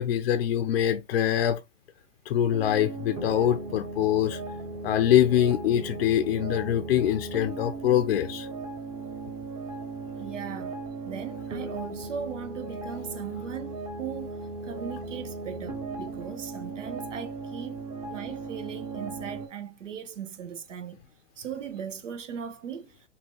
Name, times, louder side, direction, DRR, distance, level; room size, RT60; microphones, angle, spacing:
voice 1, 0.0-1.6 2.3-4.4 4.8-8.5, left 10 dB, 55° left, 0.6 m, -24 dB
sound 1, 2.5-19.5, right 3 dB, 10° right, 0.7 m, -37 dB
voice 2, 10.1-10.8 11.1-14.4 14.6-17.8 18.1-21.0 21.4-22.9, right 7 dB, 80° right, 1.0 m, -38 dB
4.3 x 2.8 x 3.2 m
hypercardioid pair, 130°, 36 cm